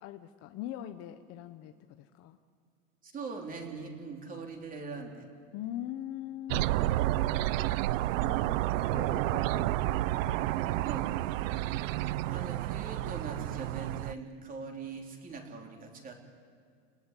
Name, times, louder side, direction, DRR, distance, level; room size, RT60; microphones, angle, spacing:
voice 1, 0.0-2.4 5.5-6.7 8.2-8.6 8.9-10.9, left 12 dB, 35° left, 8 dB, 1.0 m, -42 dB
voice 2, 3.0-5.3 10.8-11.1 11.5-11.9 12.3-16.1, right 4 dB, 20° right, 2 dB, 3.4 m, -42 dB
sound 1, 6.5-14.1, right 15 dB, 60° right, 0.7 m, -30 dB
29.0 x 18.5 x 9.9 m, 2.1 s
supercardioid pair, 155°, 43 cm